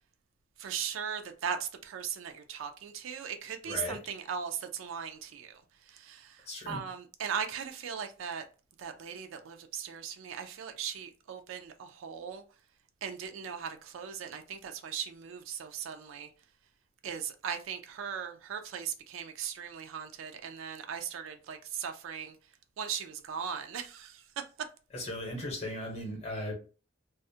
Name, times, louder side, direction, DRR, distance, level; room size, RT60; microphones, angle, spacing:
voice 1, 0.6-5.6 5.9-8.4 8.8-12.4 13.0-16.3 17.0-22.3 22.8-24.2, right 7 dB, 85° right, 0.4 m, -38 dB
voice 2, 3.6-4.1 6.5-6.8 24.9-26.5, left 1 dB, 30° left, 0.7 m, -37 dB
2.3 x 2.0 x 2.6 m
head